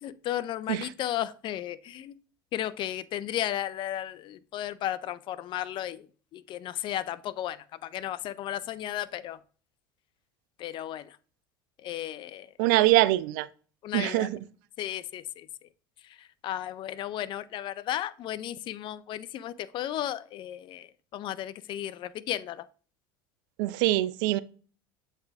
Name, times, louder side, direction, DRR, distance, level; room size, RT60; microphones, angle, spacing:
voice 1, 0.0-2.2 2.5-6.1 6.3-9.4 10.6-11.1 11.8-12.5 13.8-14.3 14.8-15.5 16.4-20.9 21.1-22.7, left 12 dB, 50° left, 0.5 m, -34 dB
voice 2, 12.6-13.5 13.9-14.4 23.6-24.4, right 16 dB, 70° right, 0.4 m, -23 dB
7.7 x 4.1 x 3.5 m
hypercardioid pair, 85°, 11 cm